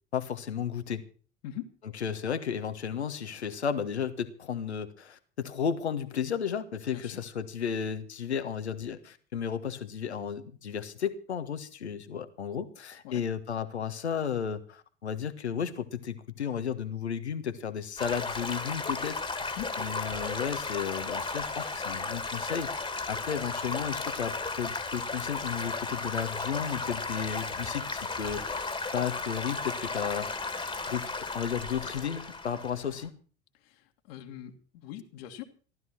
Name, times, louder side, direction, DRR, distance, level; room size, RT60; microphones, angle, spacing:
voice 1, 0.1-1.0 1.9-28.7 28.9-31.0 31.3-33.1, left 7 dB, 85° left, 10 dB, 1.5 m, -34 dB
Stream / Gurgling / Trickle dribble, 18.0-33.1, left 3 dB, 15° left, 2.2 m, -34 dB
voice 2, 33.6-35.4, left 12 dB, 60° left, 3 dB, 2.0 m, -42 dB
15.0 x 12.5 x 6.0 m, 0.40 s
figure-of-eight pair, 70°, 33 cm